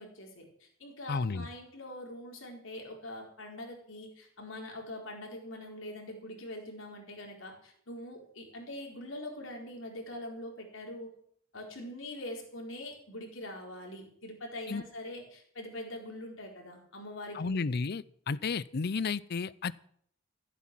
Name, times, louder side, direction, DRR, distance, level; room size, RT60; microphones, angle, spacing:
voice 1, 0.0-11.1 11.5-17.6, left 1 dB, 75° left, 0 dB, 4.5 m, -43 dB
voice 2, 1.1-1.5 14.7-14.8 17.4-19.7, left 4 dB, 55° left, 20 dB, 0.5 m, -32 dB
15.0 x 8.4 x 7.6 m, 0.63 s
head